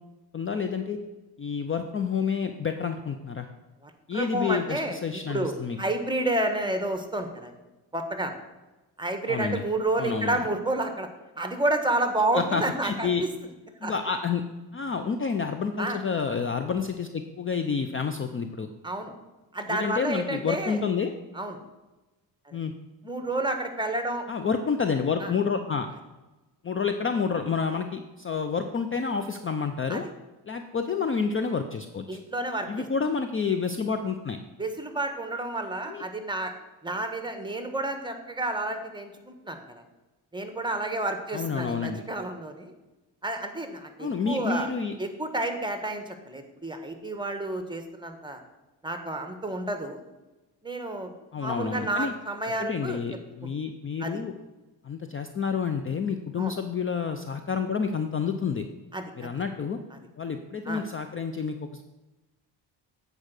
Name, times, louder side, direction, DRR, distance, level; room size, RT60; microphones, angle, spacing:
voice 1, 0.3-1.0 1.4-3.5 4.1-5.8 9.3-9.6 10.0-10.4 12.3-13.2 13.8-14.4 14.7-18.7 19.7-21.1 22.5-22.7 24.3-25.9 26.6-30.1 30.5-32.2 32.7-34.4 35.9-36.0 41.3-42.0 44.0-44.9 51.3-52.1 52.6-54.3 54.8-58.6 59.2-59.8 60.2-61.9, left 5 dB, 30° left, 7 dB, 0.5 m, -29 dB
voice 2, 3.8-7.5 7.9-8.3 9.0-11.1 11.4-13.3 13.8-13.9 15.8-16.0 18.8-19.1 19.5-20.8 21.3-21.6 22.5-22.6 23.0-24.2 25.2-25.3 29.9-30.1 32.1-32.9 34.6-36.5 36.8-39.8 40.3-42.7 43.2-44.7 45.0-48.4 48.8-50.0 50.6-51.1 51.4-53.0 53.4-53.5 54.0-54.2 56.4-56.5 58.9-59.0 60.7-60.8, right 2 dB, 10° right, 6 dB, 1.2 m, -30 dB
8.5 x 4.9 x 6.6 m, 1.1 s
cardioid pair, 85°, 45 cm